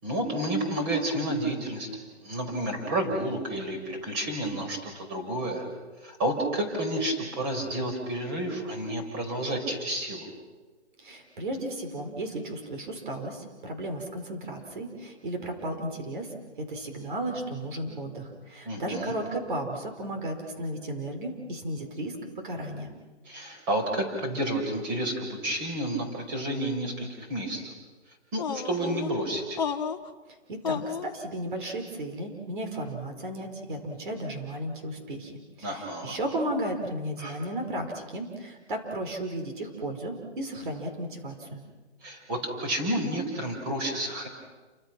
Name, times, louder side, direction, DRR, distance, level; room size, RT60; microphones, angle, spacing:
voice 1, 0.0-1.9 2.2-5.7 6.0-10.3 18.7-19.1 23.3-27.7 28.3-29.6 35.6-36.2 37.2-37.4 42.0-44.3, right 1 dB, 20° right, 4 dB, 5.2 m, -30 dB
voice 2, 11.0-22.9 30.5-35.3 35.6-41.6, right 1 dB, 45° right, 4 dB, 5.0 m, -34 dB
sound 1, 28.4-29.1 29.6-30.1 30.6-31.1, left 6 dB, 40° left, 1.3 m, -31 dB
29.5 x 25.5 x 6.2 m, 1.3 s
hypercardioid pair, 170°, 34 cm